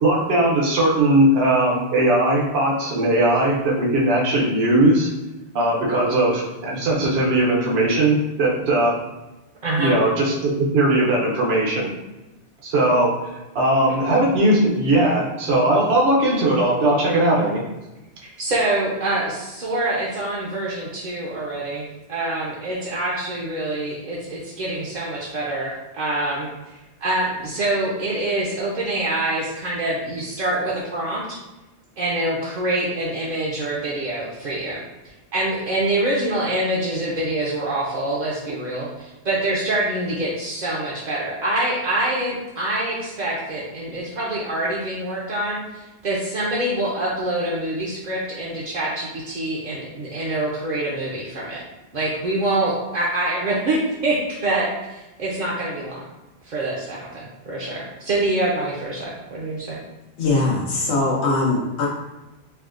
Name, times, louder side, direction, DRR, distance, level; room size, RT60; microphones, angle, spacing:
voice 1, 0.0-5.1 5.5-8.9 9.8-11.9 12.6-13.1 13.5-17.6, right 1 dB, 70° right, -3 dB, 1.0 m, -19 dB
voice 2, 9.6-10.0 18.4-26.5 27.0-31.4 32.0-34.8 35.3-51.6 51.9-56.1 56.4-59.8, right 1 dB, 50° right, -5 dB, 0.6 m, -25 dB
voice 3, 60.2-61.9, left 2 dB, 80° left, -4 dB, 0.9 m, -21 dB
4.5 x 2.1 x 2.4 m, 1.0 s
omnidirectional pair, 1.1 m